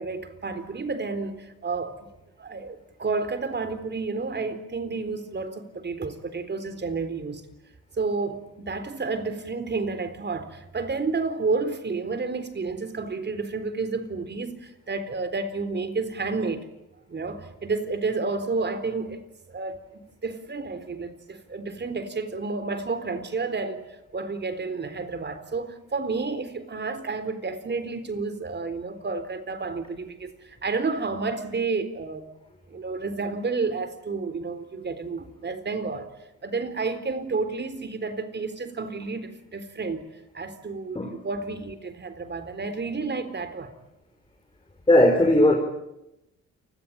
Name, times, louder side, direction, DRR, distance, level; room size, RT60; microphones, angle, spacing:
voice 1, 0.0-2.1 2.4-7.4 8.0-16.7 17.1-19.2 19.5-19.8 20.2-23.9 24.1-32.3 32.7-36.1 36.4-40.1 40.3-43.8, right 4 dB, 35° right, 4.0 m, -30 dB
voice 2, 44.9-45.5, left 1 dB, 15° left, 4.8 m, -17 dB
29.0 x 21.0 x 8.9 m
cardioid pair, 90°, 30 cm